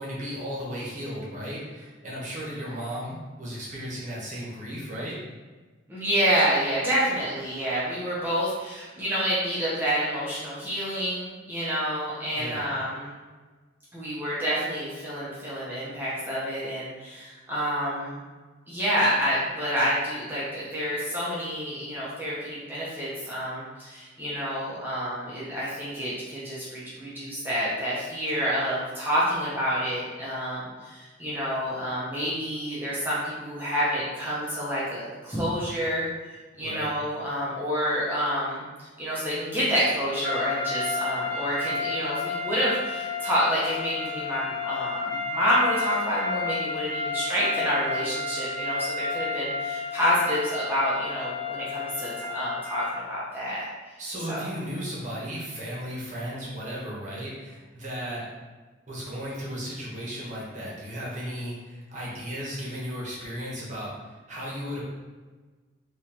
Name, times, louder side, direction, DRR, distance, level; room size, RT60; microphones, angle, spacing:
voice 1, 0.0-5.2 12.3-12.7 36.6-36.9 52.0-52.1 54.0-58.3 58.9-64.8, equal, 40° right, -6 dB, 1.0 m, -35 dB
voice 2, 5.9-13.1 13.9-18.2 18.7-53.6 54.3-54.4, equal, 10° right, -9 dB, 0.7 m, -28 dB
sound 1, 40.2-53.1, left 3 dB, 65° left, 0.7 m, -31 dB
3.6 x 3.0 x 2.9 m, 1.3 s
head